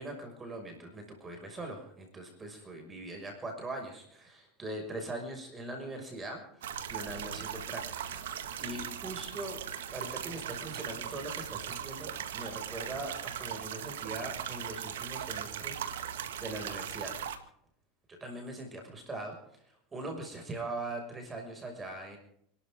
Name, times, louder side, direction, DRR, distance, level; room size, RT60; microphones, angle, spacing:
voice 1, 0.0-9.6 9.9-17.2 18.1-22.2, right 2 dB, 20° right, 3 dB, 6.1 m, -41 dB
sound 1, 6.6-17.4, right 9 dB, 90° right, 2.0 m, -39 dB
29.0 x 13.0 x 3.8 m, 0.69 s
supercardioid pair, 110°, 0 cm